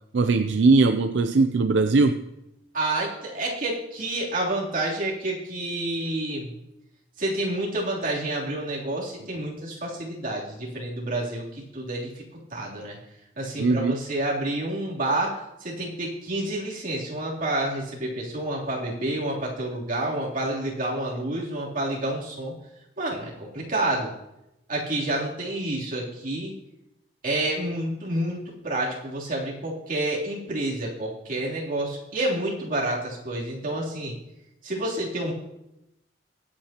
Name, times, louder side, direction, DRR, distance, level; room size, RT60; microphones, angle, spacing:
voice 1, 0.1-2.2 13.6-14.0, right 3 dB, 80° right, 8 dB, 0.5 m, -20 dB
voice 2, 2.7-6.5 7.2-12.2 12.5-13.0 13.4-22.5 23.0-24.1 24.7-26.5 27.2-34.1 34.6-35.3, right 1 dB, 50° right, -5 dB, 3.3 m, -29 dB
22.0 x 8.8 x 3.0 m, 0.90 s
head